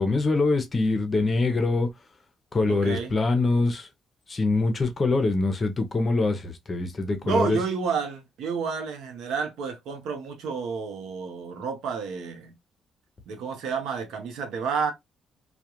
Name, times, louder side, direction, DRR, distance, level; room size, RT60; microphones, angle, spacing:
voice 1, 0.0-1.9 2.5-3.9 4.3-7.6, left 3 dB, 35° left, 0.6 m, -24 dB
voice 2, 2.7-3.1 7.2-12.5 13.3-14.9, right 5 dB, 85° right, 0.6 m, -30 dB
2.4 x 2.1 x 2.8 m
cardioid pair, 90°, 0 cm